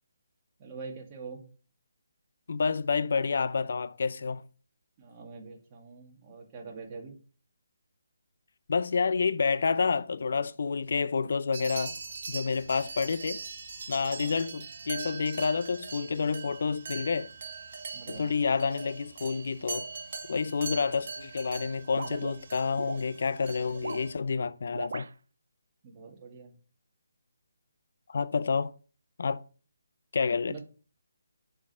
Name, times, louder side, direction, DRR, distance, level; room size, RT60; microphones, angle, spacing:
voice 1, 0.6-1.4 5.0-7.2 14.2-14.4 17.9-18.3 23.8-24.0 25.8-26.5 30.5-30.6, right 4 dB, 25° right, 2.0 m, -44 dB
voice 2, 2.5-4.4 8.7-11.9 12.3-13.4 13.9-17.3 18.1-19.9 20.3-25.1 28.1-28.7 29.2-29.4 30.1-30.6, left 5 dB, 60° left, 0.6 m, -29 dB
sound 1, 11.5-24.1, right 5 dB, 50° right, 1.7 m, -41 dB
sound 2, 22.0-23.0 23.7-24.1 24.7-25.1, right 4 dB, 70° right, 0.4 m, -38 dB
7.1 x 4.7 x 6.3 m
figure-of-eight pair, 155°, 0 cm